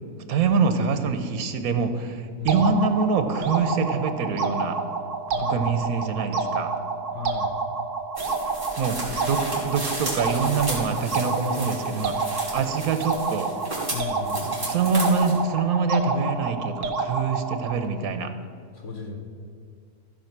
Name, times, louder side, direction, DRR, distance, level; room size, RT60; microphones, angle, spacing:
voice 1, 0.3-4.8 5.4-6.7 8.8-13.5 14.4-18.3, right 5 dB, 80° right, 9 dB, 1.3 m, -25 dB
sound 1, 2.5-17.9, right 4 dB, 60° right, 1.2 m, -29 dB
voice 2, 5.3-5.6 7.1-7.6 13.9-14.4 18.7-19.2, left 4 dB, 60° left, 2 dB, 1.4 m, -35 dB
sound 2, 8.2-15.4, right 1 dB, 20° right, 3.3 m, -34 dB
15.0 x 5.0 x 6.0 m, 2.3 s
omnidirectional pair, 1.5 m